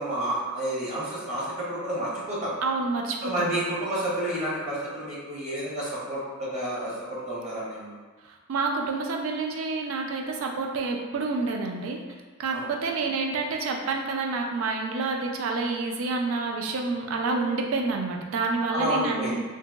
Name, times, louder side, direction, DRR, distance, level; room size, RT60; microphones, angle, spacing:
voice 1, 0.0-2.5 3.2-7.9 12.5-12.6 18.7-19.4, right 1 dB, 35° right, -7 dB, 0.8 m, -30 dB
voice 2, 2.6-3.6 8.2-12.0 12.4-19.4, right 3 dB, 85° right, 2 dB, 0.4 m, -28 dB
2.8 x 2.7 x 2.3 m, 1.3 s
head